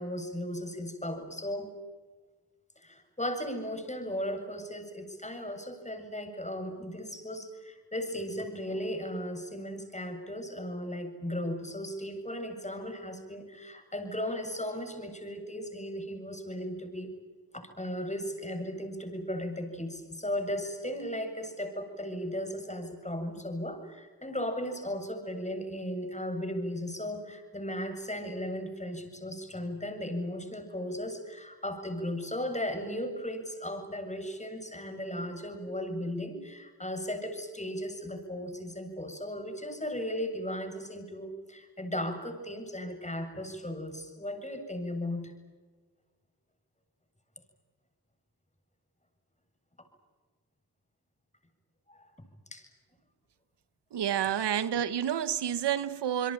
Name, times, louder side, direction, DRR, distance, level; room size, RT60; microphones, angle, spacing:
voice 1, 0.0-1.7 2.8-17.2 17.5-45.3 49.8-49.9 51.9-52.1 52.5-52.7, equal, 15° left, 7.6 m, -36 dB
voice 2, 53.9-56.3, right 9 dB, 90° right, 1.1 m, -29 dB
28.0 x 22.5 x 9.1 m
cardioid pair, 55°, 40 cm